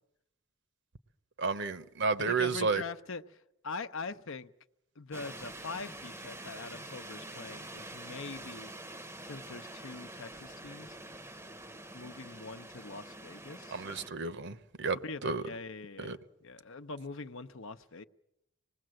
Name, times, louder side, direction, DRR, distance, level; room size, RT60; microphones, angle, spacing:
voice 1, 1.4-2.8 13.7-15.4 16.0-16.2, right 4 dB, 55° right, 0.9 m, -32 dB
voice 2, 2.2-4.5 5.0-8.7 9.2-11.0 11.9-13.8 15.0-18.0, left 4 dB, 60° left, 0.8 m, -43 dB
sound 1, 5.1-14.1, right 1 dB, 10° right, 0.8 m, -46 dB
25.5 x 20.0 x 7.7 m
head